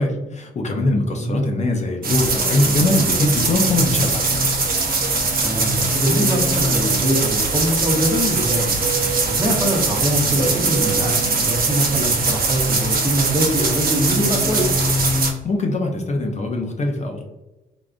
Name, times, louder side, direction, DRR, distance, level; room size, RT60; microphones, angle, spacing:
voice 1, 0.0-4.4 15.4-17.2, left 2 dB, 35° left, 2 dB, 0.5 m, -22 dB
voice 2, 1.1-1.7 5.4-8.9 9.3-14.9, right 1 dB, 20° right, 1 dB, 0.8 m, -23 dB
sound 1, 2.0-15.3, right 3 dB, 45° right, 0.8 m, -21 dB
3.5 x 2.4 x 2.4 m, 1.0 s
cardioid pair, 90°, 20 cm